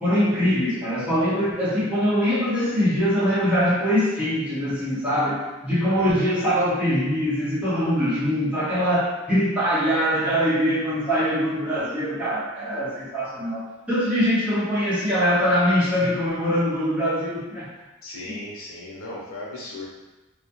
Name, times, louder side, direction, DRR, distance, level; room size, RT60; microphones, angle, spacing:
voice 1, 0.0-17.7 18.2-18.4, equal, 5° right, -11 dB, 0.8 m, -23 dB
voice 2, 5.8-6.2 18.0-19.9, left 2 dB, 85° left, -4 dB, 0.7 m, -36 dB
2.3 x 2.1 x 2.8 m, 1.1 s
head